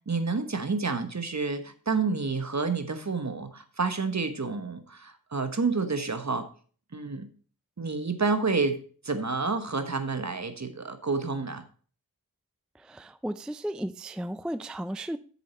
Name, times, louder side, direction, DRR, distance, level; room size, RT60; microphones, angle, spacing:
voice 1, 0.1-6.5 6.9-7.3 7.8-8.8 9.0-11.6, right 4 dB, 50° right, 1.2 m, -29 dB
voice 2, 12.8-15.2, right 1 dB, ahead, 0.3 m, -34 dB
7.7 x 7.2 x 4.2 m
wide cardioid pair, 65°, 37 cm